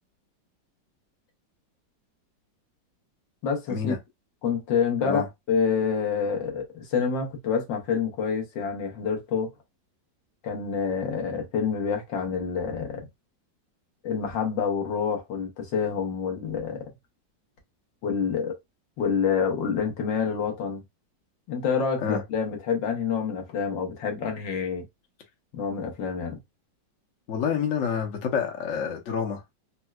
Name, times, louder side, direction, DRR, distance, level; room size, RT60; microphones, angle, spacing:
voice 1, 3.4-3.9 4.4-5.2 5.5-9.5 10.4-13.0 14.0-16.8 18.0-18.6 19.0-20.8 21.5-24.8 25.5-26.4, left 6 dB, 80° left, 1.7 m, -27 dB
voice 2, 27.3-29.4, left 7 dB, 55° left, 1.0 m, -28 dB
4.3 x 2.2 x 2.2 m
omnidirectional pair, 2.0 m